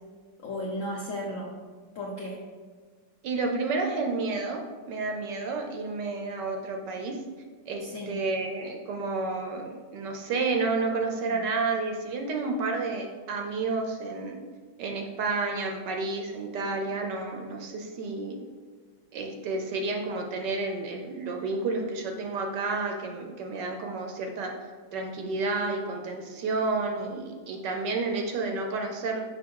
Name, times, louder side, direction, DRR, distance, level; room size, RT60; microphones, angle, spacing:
voice 1, 0.4-1.5 1.9-2.4 7.8-8.1 11.3-11.4, left 1 dB, 70° left, -2 dB, 0.7 m, -34 dB
voice 2, 3.2-7.2 7.7-14.4 14.8-18.4 19.1-24.5 24.9-29.2, right 3 dB, 70° right, 2 dB, 1.1 m, -30 dB
6.0 x 5.2 x 3.7 m, 1.5 s
omnidirectional pair, 2.2 m